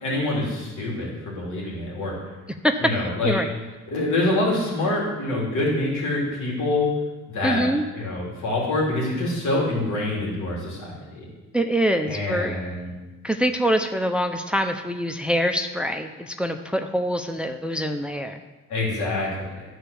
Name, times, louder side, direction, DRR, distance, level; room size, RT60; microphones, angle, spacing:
voice 1, 0.0-2.1 2.8-3.3 3.9-6.9 7.3-7.6 7.9-11.3 12.0-12.9 18.7-19.6, left 2 dB, 75° left, -4 dB, 3.3 m, -26 dB
voice 2, 2.6-3.5 7.4-7.8 11.5-12.6 13.2-18.4, equal, 5° right, 6 dB, 0.6 m, -24 dB
12.0 x 4.5 x 6.9 m, 1.2 s
cardioid pair, 90°, 30 cm